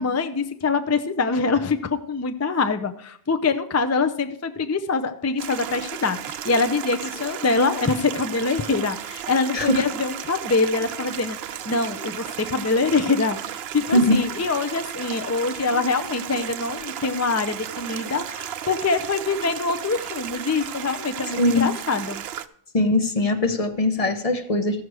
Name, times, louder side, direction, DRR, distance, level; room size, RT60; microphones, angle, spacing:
voice 1, 0.0-11.4 11.7-22.2, left 4 dB, 25° left, 8 dB, 0.4 m, -24 dB
Stream, 5.4-22.5, right 10 dB, 80° right, 0.8 m, -34 dB
voice 2, 21.3-21.7 22.7-24.8, left 1 dB, 40° left, 8 dB, 0.8 m, -21 dB
14.0 x 6.4 x 4.7 m, 0.64 s
omnidirectional pair, 1.1 m